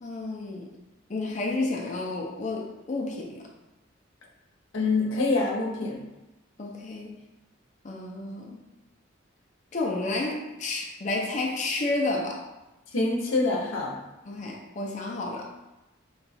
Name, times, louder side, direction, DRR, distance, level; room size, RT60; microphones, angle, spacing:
voice 1, 0.0-0.8 1.1-3.4 6.6-7.2 7.8-8.6 9.7-12.4 14.2-15.5, left 2 dB, 35° left, -1 dB, 0.5 m, -31 dB
voice 2, 4.7-6.0 12.9-13.9, left 3 dB, 90° left, 0 dB, 0.7 m, -25 dB
3.9 x 2.3 x 4.0 m, 1.0 s
head